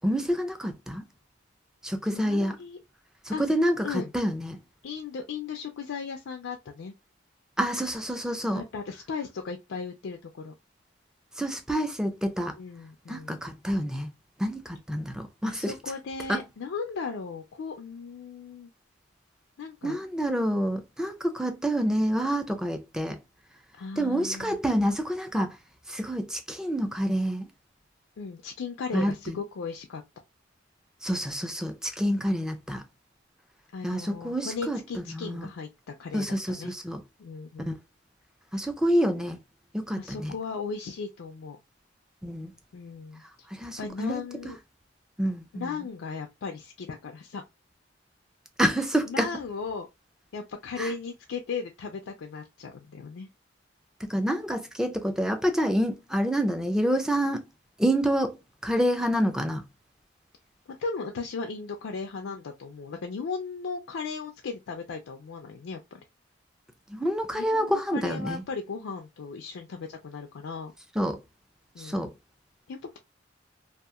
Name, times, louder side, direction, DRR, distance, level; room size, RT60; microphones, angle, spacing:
voice 1, 0.0-1.1 1.8-2.6 3.3-4.6 7.6-8.6 11.4-12.6 13.1-14.1 14.4-15.7 16.3-16.4 19.8-23.2 24.0-25.6 25.9-27.5 28.9-29.3 31.0-32.8 33.8-34.8 35.1-35.5 36.1-37.0 37.7-37.8 38.5-39.4 39.7-40.3 42.2-42.5 43.5-44.2 45.2-45.7 48.6-49.3 50.8-50.9 54.0-57.5 57.8-58.4 58.6-59.6 66.9-68.4 71.0-71.2 71.8-72.1, equal, 5° right, 0.4 m, -27 dB
voice 2, 2.1-2.8 3.3-3.5 3.8-4.1 4.8-6.9 8.5-10.5 12.6-13.4 15.4-18.7 19.6-20.0 23.8-24.6 28.2-30.0 32.1-32.4 33.7-36.7 37.2-37.7 39.9-41.6 42.7-43.2 43.8-44.6 45.6-47.4 49.1-49.9 50.3-53.3 60.8-66.0 67.3-70.7 71.7-72.1 72.7-73.0, left 5 dB, 85° left, 0.4 m, -36 dB
2.8 x 2.4 x 2.3 m
head